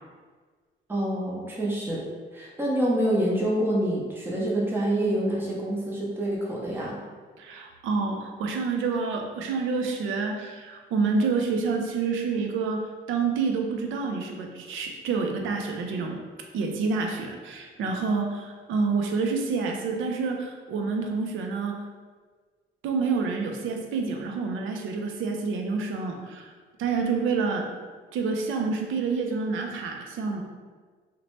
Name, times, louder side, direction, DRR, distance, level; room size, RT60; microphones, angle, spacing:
voice 1, 0.9-2.0 2.3-7.0, right 1 dB, 10° right, -4 dB, 0.6 m, -26 dB
voice 2, 7.4-12.8 13.1-16.2 16.5-21.8 22.8-26.5 26.8-27.7 28.1-30.4, right 4 dB, 80° right, 2 dB, 0.5 m, -28 dB
2.8 x 2.1 x 3.0 m, 1.5 s
cardioid pair, 90°, 20 cm